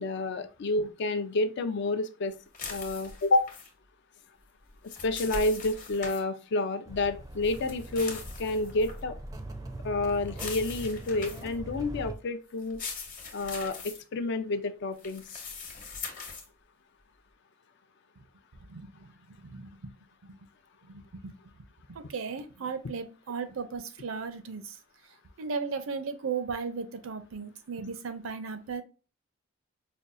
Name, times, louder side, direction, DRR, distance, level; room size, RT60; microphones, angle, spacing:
voice 1, 0.0-2.4 2.7-3.5 5.0-9.1 9.8-12.8 13.3-15.2, left 2 dB, 60° left, 0.4 m, -29 dB
sound 1, 2.5-3.7 4.6-6.2 7.4-9.0 10.3-11.5 12.6-14.0 15.0-16.5, left 4 dB, 40° left, 1.0 m, -41 dB
sound 2, 6.9-12.1, right 2 dB, 15° right, 0.4 m, -42 dB
voice 2, 18.6-19.1 19.4-19.9 20.2-20.4 20.8-21.3 21.9-24.8 25.4-28.8, right 5 dB, 80° right, 0.5 m, -36 dB
5.1 x 2.3 x 2.5 m
head